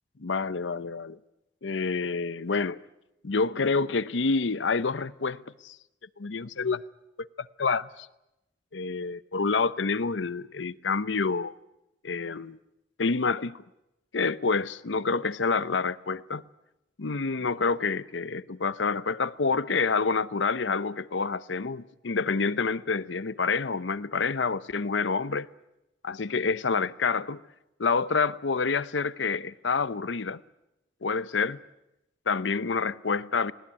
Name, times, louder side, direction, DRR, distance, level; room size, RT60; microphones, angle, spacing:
voice 1, 0.2-1.2 1.6-2.8 3.2-5.8 6.2-6.8 7.4-8.1 8.7-11.5 12.0-12.6 13.0-13.6 14.1-16.4 17.0-25.5 26.0-27.4 27.8-30.4 31.0-31.6 32.3-33.5, left 4 dB, 90° left, 0.8 m, -28 dB
19.5 x 19.0 x 9.8 m
head